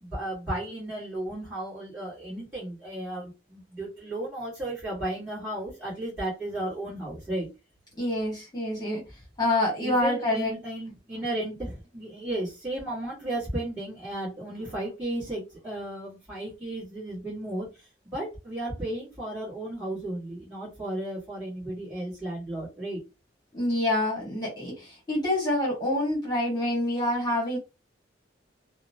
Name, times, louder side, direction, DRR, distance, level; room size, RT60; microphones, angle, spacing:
voice 1, 0.0-7.5 9.8-23.0, right 1 dB, 10° right, -12 dB, 1.4 m, -34 dB
voice 2, 8.0-9.0 9.4-10.6 23.5-27.6, left 1 dB, 20° left, -4 dB, 1.2 m, -27 dB
2.8 x 2.0 x 2.6 m, 0.27 s
head